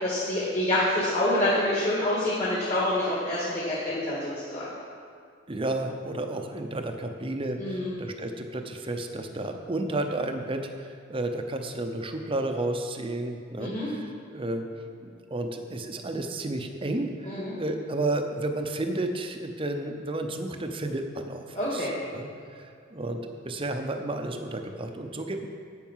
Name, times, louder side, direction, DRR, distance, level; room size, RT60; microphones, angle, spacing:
voice 1, 0.0-4.7 7.6-7.9 13.6-13.9 17.2-17.5 21.5-21.9, left 1 dB, 35° left, -7 dB, 1.9 m, -27 dB
voice 2, 5.5-14.7 15.0-22.3 22.5-25.5, right 2 dB, 25° right, 5 dB, 0.7 m, -32 dB
9.3 x 8.2 x 5.7 m, 2.3 s
head